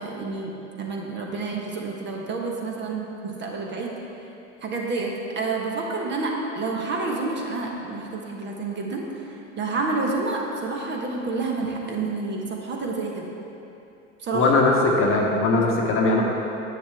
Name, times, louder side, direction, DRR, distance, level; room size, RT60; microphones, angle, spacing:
voice 1, 0.0-3.9 4.6-13.3 14.2-14.5, right 3 dB, 30° right, 0 dB, 1.2 m, -29 dB
voice 2, 14.3-16.2, left 3 dB, 35° left, -1 dB, 1.1 m, -20 dB
10.0 x 7.8 x 3.5 m, 2.8 s
figure-of-eight pair, 80°, 39 cm